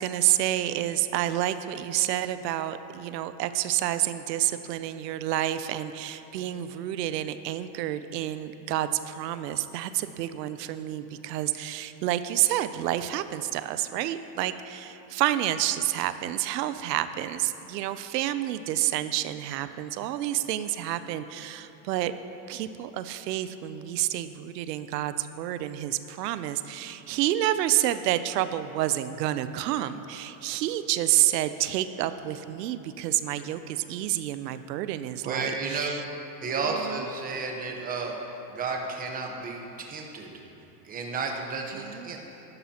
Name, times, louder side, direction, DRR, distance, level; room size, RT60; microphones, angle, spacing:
voice 1, 0.0-22.1 22.5-36.0 36.8-37.0 41.7-42.2, right 13 dB, 90° right, 12 dB, 0.6 m, -29 dB
voice 2, 35.2-36.1 36.4-38.1 38.5-40.4 40.8-42.2, right 4 dB, 15° right, 1 dB, 1.0 m, -32 dB
14.0 x 11.5 x 2.9 m, 3.0 s
supercardioid pair, 150°, 48 cm